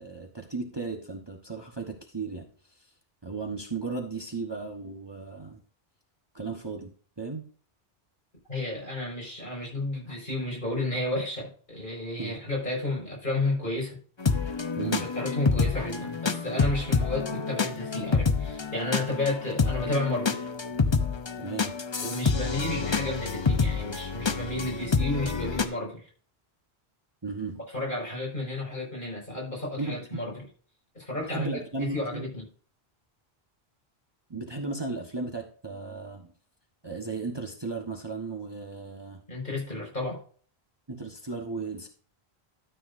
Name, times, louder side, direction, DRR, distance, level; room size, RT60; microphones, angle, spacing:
voice 1, 0.0-2.4 3.2-5.6 6.3-7.4 12.2-12.4 14.8-15.1 21.4-21.8 27.2-27.6 29.8-30.2 31.3-32.2 34.3-36.3 36.8-39.2 40.9-41.9, right 3 dB, 25° right, 1 dB, 1.3 m, -35 dB
voice 2, 8.5-14.0 14.8-20.5 22.0-26.1 27.6-30.4 30.9-32.4 39.3-40.2, left 2 dB, 50° left, -2 dB, 5.7 m, -32 dB
sound 1, 14.2-25.6, left 5 dB, 30° left, 0.7 m, -28 dB
13.0 x 8.3 x 2.7 m, 0.42 s
omnidirectional pair, 1.1 m